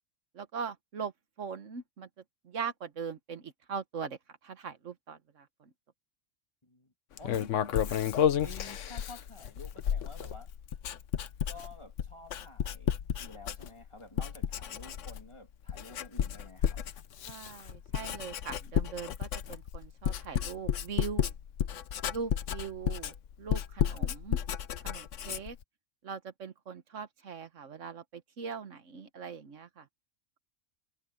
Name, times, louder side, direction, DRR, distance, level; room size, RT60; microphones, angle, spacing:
voice 1, 0.3-1.1 1.4-2.1 2.4-5.7 17.2-21.3 22.1-24.4 24.8-25.6 26.0-29.9, right 6 dB, 70° right, 1.6 m, -41 dB
voice 2, 6.6-7.7 8.4-10.5 11.5-16.8, left 2 dB, 20° left, 2.7 m, -50 dB
Writing, 7.2-13.9 14.2-15.3 15.7-25.6, left 9 dB, 75° left, 1.1 m, -32 dB
omnidirectional pair, 1.3 m